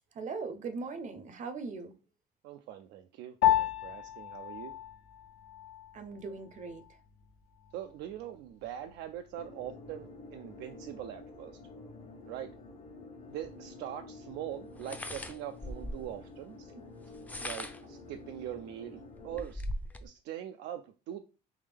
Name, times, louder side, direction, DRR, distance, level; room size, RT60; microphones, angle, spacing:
voice 1, 0.1-1.9 5.9-7.0 16.8-16.9, right 4 dB, 45° right, 0.6 m, -40 dB
voice 2, 2.4-4.8 7.7-11.6 12.2-12.5 13.3-16.7 17.4-19.6 20.0-21.2, right 11 dB, 90° right, 0.4 m, -42 dB
Piano, 3.4-13.0, left 11 dB, 75° left, 0.6 m, -35 dB
sound 1, 9.3-19.4, left 3 dB, 45° left, 0.8 m, -50 dB
sound 2, 13.4-13.5 14.8-16.1 17.1-17.9 18.6-18.7 19.0-20.1, left 1 dB, 10° left, 0.4 m, -39 dB
3.6 x 3.1 x 3.4 m
cardioid pair, 110°, 17 cm